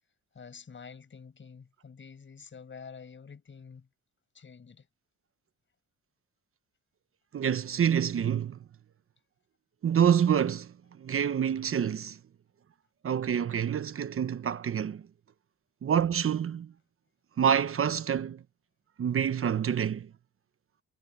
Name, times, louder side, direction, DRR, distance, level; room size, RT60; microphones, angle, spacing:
voice 1, 0.3-3.9 4.3-4.9, left 6 dB, 40° left, 6.3 m, -48 dB
voice 2, 7.3-8.6 9.8-12.2 13.0-15.0 15.8-16.7 17.4-18.4 19.0-20.1, right 8 dB, 45° right, 1.0 m, -27 dB
cardioid pair, 90°, 30 cm